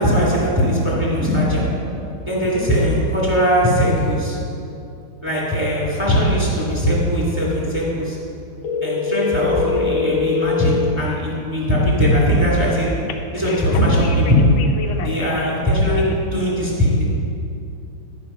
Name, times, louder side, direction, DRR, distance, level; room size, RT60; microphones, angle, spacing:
voice 1, 0.0-1.6 2.3-4.4 5.2-8.2 8.8-12.9 13.3-14.4 15.0-17.0, equal, 5° right, -6 dB, 2.4 m, -19 dB
sound 1, 8.6-10.9 13.1-15.5 15.9-16.1, left 5 dB, 75° left, 1.5 m, -24 dB
12.5 x 5.1 x 5.6 m, 2.7 s
omnidirectional pair, 2.3 m